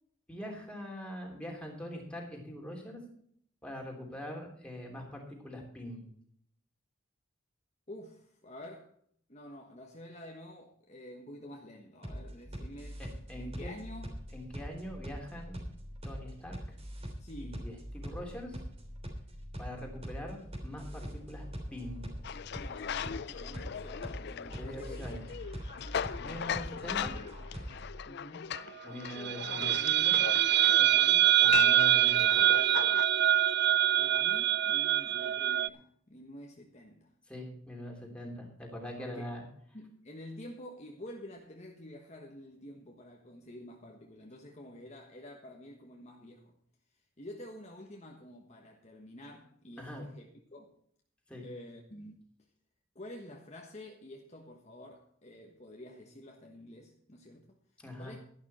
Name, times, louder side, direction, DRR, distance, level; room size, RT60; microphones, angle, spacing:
voice 1, 0.3-3.0 3.6-6.0 13.0-13.7 14.3-15.6 16.0-16.8 17.4-18.6 19.6-21.5 21.7-22.1 24.6-25.3 26.2-27.1 28.8-30.2 31.4-32.4 37.3-39.4 49.8-50.1 51.3-51.4 57.8-58.2, equal, 5° left, 3.3 m, -43 dB
voice 2, 7.9-8.9 9.3-13.0 13.3-14.2 17.2-17.8 22.6-25.1 28.0-28.6 30.8-31.4 34.0-37.1 39.0-39.2 39.7-46.6 47.2-50.8 51.4-52.1 52.9-57.6 58.0-58.2, left 1 dB, 35° left, 1.4 m, -49 dB
sound 1, 12.0-28.0, equal, 30° right, 3.3 m, -43 dB
sound 2, 22.2-33.0, left 8 dB, 55° left, 0.4 m, -39 dB
sound 3, 29.2-35.7, right 13 dB, 55° right, 0.4 m, -25 dB
12.0 x 11.5 x 4.3 m
head